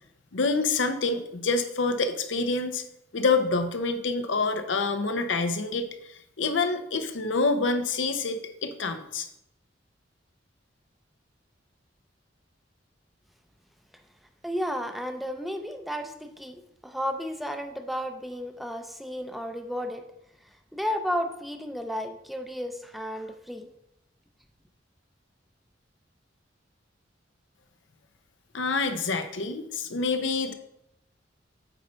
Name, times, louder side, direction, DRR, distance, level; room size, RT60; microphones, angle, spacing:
voice 1, 0.3-2.8 3.1-9.3 28.5-30.5, left 3 dB, 80° left, 8 dB, 0.8 m, -27 dB
voice 2, 14.4-20.0 20.7-23.7, equal, ahead, 6 dB, 0.6 m, -33 dB
8.3 x 4.1 x 5.6 m, 0.81 s
head